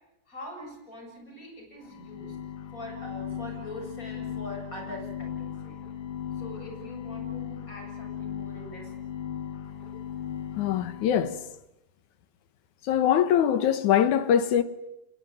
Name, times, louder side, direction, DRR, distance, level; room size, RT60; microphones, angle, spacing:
voice 1, 0.3-2.4 2.7-5.8 6.3-8.9, left 1 dB, 25° left, 8.0 m, -43 dB
sound 1, 1.8-11.5, left 9 dB, 55° left, 2.4 m, -37 dB
voice 2, 10.6-11.4 12.9-14.6, left 9 dB, 75° left, 2.5 m, -22 dB
27.5 x 21.5 x 9.1 m
omnidirectional pair, 3.6 m